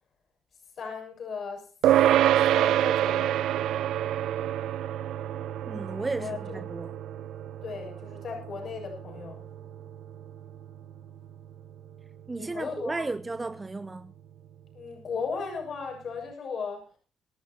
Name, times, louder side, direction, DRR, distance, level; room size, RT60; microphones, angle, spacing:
voice 1, 0.8-1.7 2.2-3.9 6.2-6.6 7.6-9.4 12.3-13.1 14.7-17.0, left 5 dB, 55° left, 7.1 m, -37 dB
sound 1, 1.8-11.5, right 12 dB, 80° right, 0.7 m, -27 dB
voice 2, 5.7-7.0 12.3-14.1, right 3 dB, 20° right, 0.7 m, -34 dB
25.0 x 11.5 x 2.8 m
cardioid pair, 90°, 0 cm